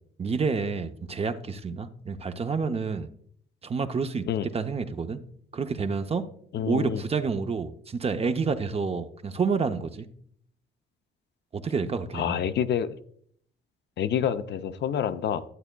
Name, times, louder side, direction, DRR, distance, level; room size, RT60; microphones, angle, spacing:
voice 1, 0.2-3.1 3.6-4.2 4.5-5.2 5.5-6.2 6.6-10.1 11.6-12.5, right 5 dB, 30° right, 0.5 m, -29 dB
voice 2, 6.5-7.0 12.1-13.0 14.0-15.4, left 9 dB, 60° left, 0.5 m, -27 dB
11.0 x 8.0 x 2.2 m
cardioid pair, 90°, 20 cm